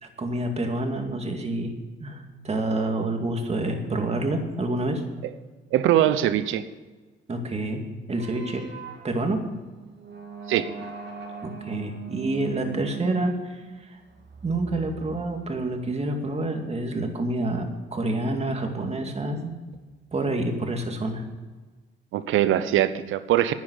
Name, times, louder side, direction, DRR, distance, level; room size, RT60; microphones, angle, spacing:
voice 1, 0.0-1.7 2.0-5.0 7.3-8.6 9.0-9.4 11.4-14.0 14.4-19.5 20.1-21.2, right 2 dB, 30° right, 4 dB, 2.3 m, -28 dB
voice 2, 5.7-6.6 10.5-10.7 22.1-23.5, right 12 dB, 85° right, 13 dB, 0.9 m, -22 dB
sound 1, 8.1-15.9, right 7 dB, 60° right, 2.4 m, -40 dB
10.5 x 9.6 x 8.2 m, 1.3 s
cardioid pair, 90°, 20 cm